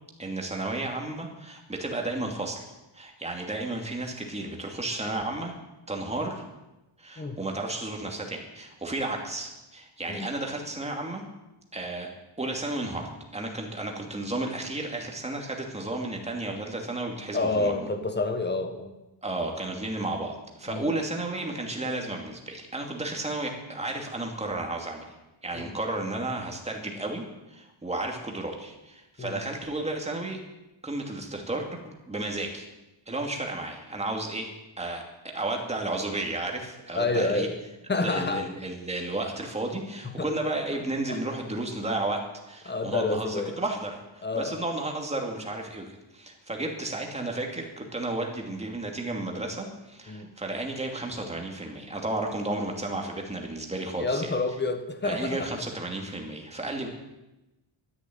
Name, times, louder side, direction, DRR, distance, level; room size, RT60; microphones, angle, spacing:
voice 1, 0.2-5.5 5.9-6.4 7.0-11.2 11.7-12.1 12.4-17.8 19.2-25.0 25.4-27.2 27.5-30.4 30.8-32.7 33.1-35.0 35.3-37.5 38.0-54.3 55.0-56.9, right 2 dB, 15° right, 1 dB, 2.5 m, -33 dB
voice 2, 17.3-18.9 20.7-20.9 25.5-25.8 29.2-29.4 36.9-37.6 37.9-38.5 40.0-40.3 41.1-41.2 42.6-43.6 44.2-44.6 50.1-50.3 54.0-55.5, left 3 dB, 20° left, 8 dB, 1.4 m, -29 dB
12.5 x 11.0 x 9.3 m, 0.98 s
wide cardioid pair, 175°, 49 cm